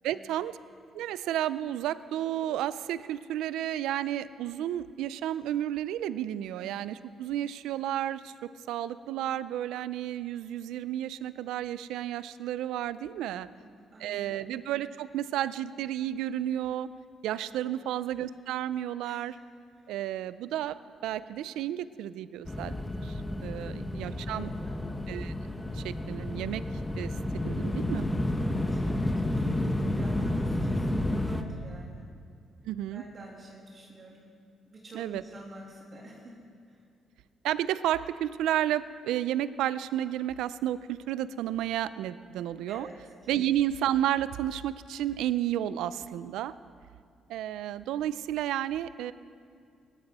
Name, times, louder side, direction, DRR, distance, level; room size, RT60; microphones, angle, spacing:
voice 1, 0.0-0.6 0.9-13.5 14.0-16.9 17.2-19.4 19.9-20.8 21.0-22.8 23.0-24.5 25.1-25.3 25.7-26.6 27.0-28.1 32.6-33.0 34.9-35.2 37.4-42.9 43.3-46.5 47.3-49.1, right 12 dB, 90° right, 16 dB, 0.4 m, -32 dB
voice 2, 13.3-14.5 17.7-18.0 19.1-19.2 23.6-24.9 28.4-32.1 32.9-34.3 34.7-36.4 36.7-36.8 42.7-43.0 43.3-43.4, right 2 dB, 40° right, -2 dB, 2.2 m, -48 dB
sound 1, 22.4-31.4, left 1 dB, 15° left, 0.9 m, -31 dB
17.5 x 13.0 x 4.2 m, 2.3 s
cardioid pair, 90°, 0 cm